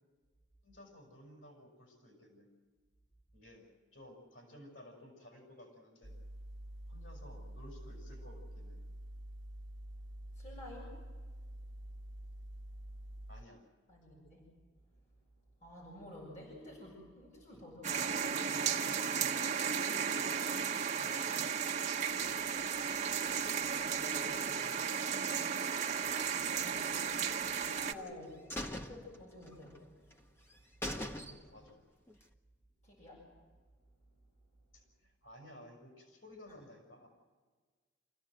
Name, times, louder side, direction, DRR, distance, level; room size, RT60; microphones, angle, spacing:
voice 1, 0.6-2.5 3.3-6.1 6.9-8.8 13.3-13.6 17.5-17.6 17.9-21.7 24.3-25.5 31.5-31.8 34.7-37.1, left 1 dB, 80° left, 0 dB, 6.3 m, -56 dB
sound 1, 6.0-13.4, right 1 dB, 70° right, 1.0 m, -47 dB
voice 2, 10.3-10.9 13.9-14.4 15.6-18.1 22.7-24.4 26.2-28.4 28.7-29.9 31.1-31.4 32.8-33.2, left 1 dB, 40° left, -4 dB, 6.6 m, -52 dB
sound 2, 17.8-27.9, right 7 dB, 40° right, 1.3 m, -34 dB
sound 3, 27.4-28.1 28.5-29.8 30.1-30.2 30.5-30.6 30.8-31.7 32.1-32.2, equal, 10° left, 1.2 m, -42 dB
26.5 x 16.0 x 7.9 m, 1.5 s
head